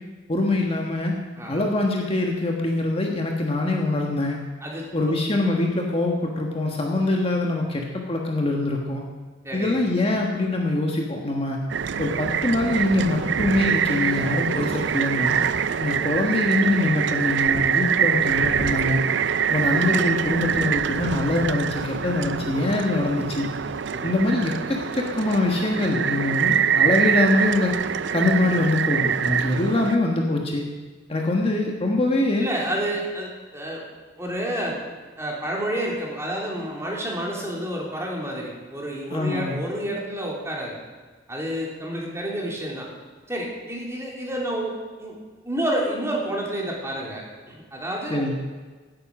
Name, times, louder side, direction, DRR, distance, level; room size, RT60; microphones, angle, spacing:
voice 1, 0.3-1.2 1.5-4.4 4.9-9.0 9.5-11.6 12.0-15.4 15.8-19.0 19.5-23.5 24.0-27.7 28.1-30.6 31.1-32.5 39.1-39.6 48.1-48.3, left 2 dB, 30° left, 0 dB, 1.4 m, -23 dB
voice 2, 9.4-9.8 23.9-24.1 32.4-33.8 34.2-34.8 35.2-40.7 41.3-42.9 43.3-44.7 45.0-45.1 45.4-48.3, right 1 dB, 15° right, -2 dB, 3.0 m, -29 dB
sound 1, 11.7-29.9, right 7 dB, 70° right, 0.5 m, -24 dB
16.5 x 9.1 x 6.0 m, 1.4 s
head